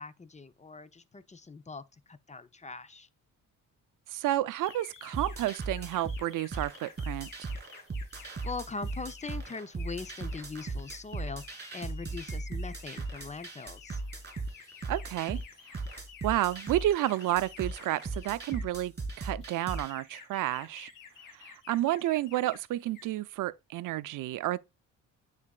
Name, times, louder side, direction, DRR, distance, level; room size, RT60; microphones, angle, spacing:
voice 1, 0.0-3.1 8.1-14.0, left 4 dB, 20° left, 0.7 m, -42 dB
voice 2, 4.1-7.5 14.9-15.4 16.2-20.9 21.4-24.6, right 14 dB, 80° right, 0.5 m, -31 dB
sound 1, 4.5-18.8 19.4-22.6 22.9-23.2, left 7 dB, 80° left, 2.4 m, -52 dB
sound 2, 5.1-19.9, right 3 dB, 30° right, 2.8 m, -38 dB
9.6 x 4.1 x 2.4 m
cardioid pair, 85°, 31 cm